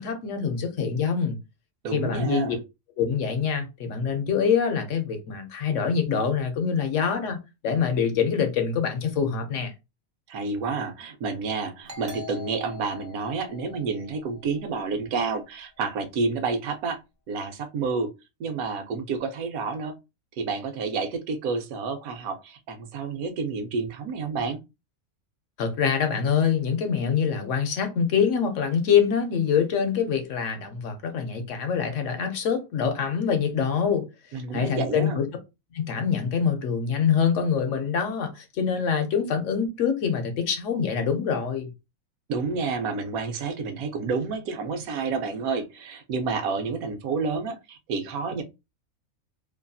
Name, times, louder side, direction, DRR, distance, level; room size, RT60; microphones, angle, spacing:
voice 1, 0.0-1.4 1.9-2.6 3.0-7.4 7.6-9.7 25.6-34.0 34.5-35.3 35.7-41.7, left 7 dB, 65° left, 0.9 m, -25 dB
voice 2, 1.8-2.6 10.3-17.0 17.3-18.1 18.4-19.9 20.4-24.6 34.3-35.2 42.3-48.4, right 4 dB, 80° right, 1.1 m, -29 dB
Doorbell, 11.9-15.2, left 6 dB, 40° right, 0.7 m, -44 dB
2.8 x 2.6 x 2.3 m
omnidirectional pair, 1.5 m